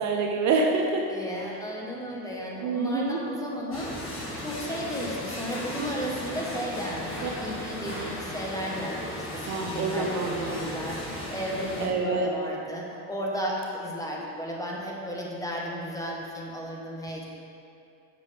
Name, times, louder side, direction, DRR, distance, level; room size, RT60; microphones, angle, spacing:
voice 1, 0.0-1.0 2.6-3.2 7.2-7.3 9.4-10.6 11.8-12.3, right 4 dB, 45° right, 1 dB, 0.7 m, -26 dB
voice 2, 1.1-3.9 4.4-11.0 11.3-17.3, equal, 10° left, -3 dB, 1.2 m, -34 dB
sound 1, 3.7-11.9, left 1 dB, 30° left, 1.7 m, -36 dB
7.7 x 6.1 x 3.4 m, 2.7 s
supercardioid pair, 110°, 39 cm